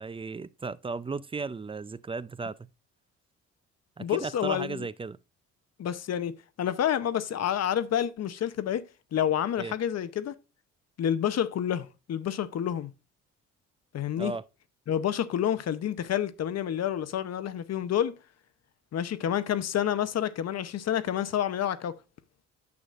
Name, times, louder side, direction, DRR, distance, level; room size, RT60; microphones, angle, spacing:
voice 1, 0.0-2.7 4.0-5.2 9.6-9.7 14.2-14.4, right 4 dB, 20° right, 0.4 m, -35 dB
voice 2, 4.0-4.9 5.8-10.3 11.0-12.9 13.9-14.3 14.9-18.2 18.9-21.9, left 10 dB, 55° left, 0.9 m, -29 dB
9.5 x 6.2 x 2.5 m
cardioid pair, 90°, 30 cm